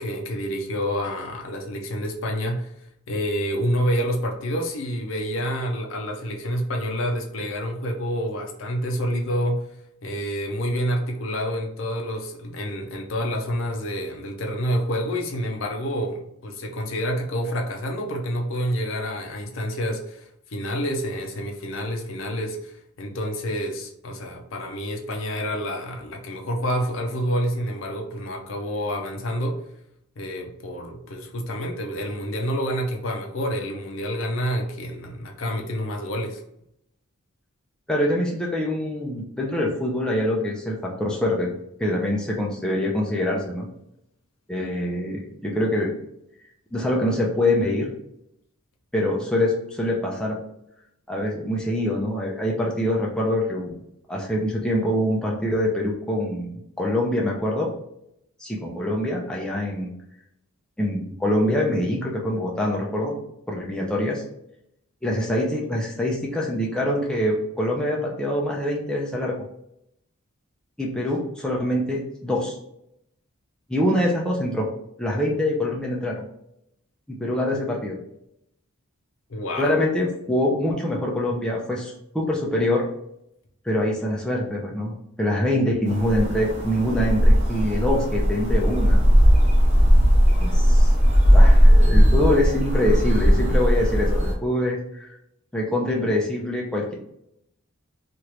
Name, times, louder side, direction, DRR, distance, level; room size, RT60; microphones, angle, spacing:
voice 1, 0.0-2.7 3.1-9.7 10.0-29.6 30.2-36.4 79.3-79.7, equal, 60° left, 2 dB, 0.5 m, -28 dB
voice 2, 37.9-41.5 41.8-43.7 44.5-45.9 46.7-47.9 48.9-50.4 51.1-53.8 54.1-57.7 58.4-59.9 60.8-63.2 63.5-64.2 65.0-69.3 70.8-72.6 73.7-74.7 75.0-76.2 77.1-78.0 79.6-82.8 83.6-89.0 90.4-90.9 91.3-95.1 95.5-96.9, left 1 dB, 5° left, -3 dB, 0.4 m, -24 dB
sound 1, 85.9-94.3, equal, 30° right, 0.9 m, -17 dB
2.9 x 2.5 x 3.2 m, 0.79 s
head